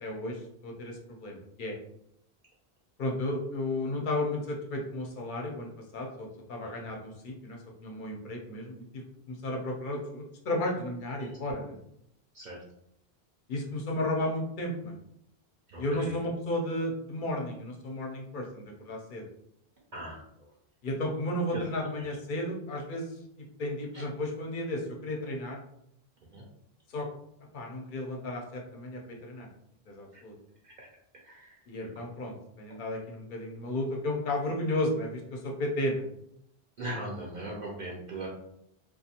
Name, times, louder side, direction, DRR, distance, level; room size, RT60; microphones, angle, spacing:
voice 1, 0.0-1.7 3.0-9.0 9.3-11.7 13.5-14.9 15.8-19.2 20.8-23.1 23.6-25.6 26.9-27.1 27.5-29.5 29.9-30.3 31.7-36.0, left 1 dB, 60° left, 1 dB, 0.7 m, -33 dB
voice 2, 15.7-16.2 19.9-20.2 21.5-21.6 22.0-22.1 23.9-24.0 26.3-26.4 30.1-30.2 30.6-30.9 31.2-31.5 36.8-38.3, right 1 dB, 55° right, -3 dB, 0.6 m, -39 dB
2.4 x 2.3 x 2.8 m, 0.76 s
omnidirectional pair, 1.0 m